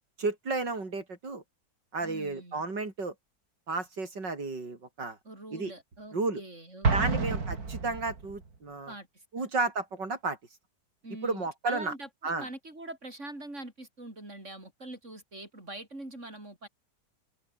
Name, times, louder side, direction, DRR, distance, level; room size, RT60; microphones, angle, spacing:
voice 1, 0.2-1.4 1.9-3.1 3.7-5.2 5.5-5.7 6.1-6.4 6.9-8.9 9.3-10.4 11.2-11.9 12.2-12.5, right 3 dB, 85° right, 5.2 m, -32 dB
voice 2, 2.0-2.6 5.2-7.2 8.9-9.5 11.0-16.7, right 1 dB, 40° right, 8.0 m, -44 dB
Explosion, 6.8-8.4, right 4 dB, 55° right, 3.5 m, -29 dB
omnidirectional pair, 1.9 m